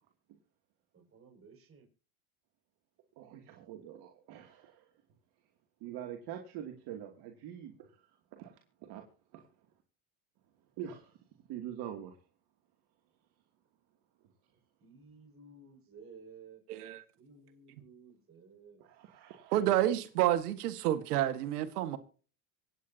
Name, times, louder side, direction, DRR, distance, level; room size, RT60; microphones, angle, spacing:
voice 1, 0.9-1.9 14.8-16.6 17.2-18.8, right 4 dB, 30° right, 5.9 m, -55 dB
voice 2, 3.2-4.9 5.8-9.0 9.3-9.5 10.8-11.2 11.5-12.2 18.8-19.6, right 10 dB, 60° right, 2.7 m, -45 dB
voice 3, 16.7-17.0 19.5-22.0, right 12 dB, 90° right, 1.8 m, -29 dB
25.5 x 9.4 x 2.8 m
supercardioid pair, 110°, 45 cm